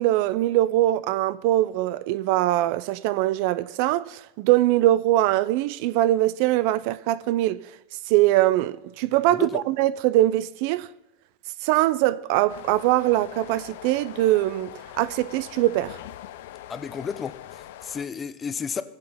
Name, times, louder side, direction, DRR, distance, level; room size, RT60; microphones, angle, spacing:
voice 1, 0.0-7.6 8.1-10.9 11.6-16.0, right 15 dB, 55° right, 0.4 m, -22 dB
voice 2, 9.3-9.6 16.7-18.8, left 6 dB, 20° left, 0.5 m, -32 dB
sound 1, 12.5-18.1, left 13 dB, 75° left, 0.6 m, -42 dB
19.5 x 8.0 x 3.5 m
supercardioid pair, 160°, 0 cm